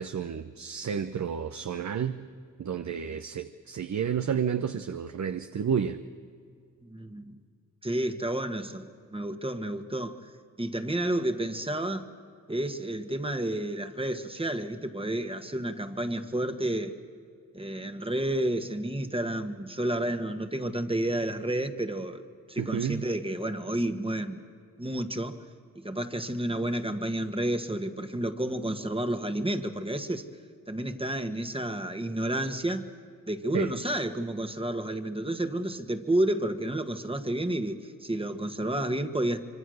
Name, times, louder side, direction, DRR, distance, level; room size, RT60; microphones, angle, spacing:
voice 1, 0.0-2.3 2.6-6.0 22.6-23.0 33.5-33.7, right 7 dB, 55° right, 9 dB, 0.9 m, -31 dB
voice 2, 6.8-7.4 7.8-10.3 10.6-12.1 12.5-16.9 17.5-22.2 22.5-24.4 24.8-25.4 25.7-30.2 30.7-32.9 33.3-39.4, right 1 dB, 15° right, 7 dB, 1.6 m, -30 dB
25.5 x 24.5 x 6.5 m, 2.2 s
cardioid pair, 55°, 34 cm